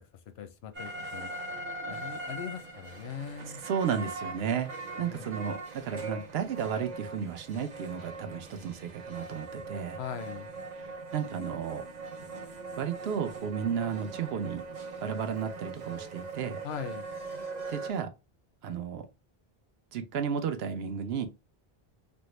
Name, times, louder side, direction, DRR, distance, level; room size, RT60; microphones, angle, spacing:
voice 1, 0.4-1.3 1.9-3.6 5.0-5.5 10.0-10.5 16.6-17.1, left 7 dB, 85° left, 0.8 m, -40 dB
sound 1, 0.7-17.9, right 3 dB, 50° right, 0.7 m, -41 dB
voice 2, 3.6-4.7 5.0-10.0 10.8-11.9 12.8-14.6 15.0-16.6 17.7-18.1 18.6-19.1 19.9-21.3, right 7 dB, 75° right, 0.8 m, -33 dB
3.5 x 2.1 x 3.0 m
omnidirectional pair, 1.0 m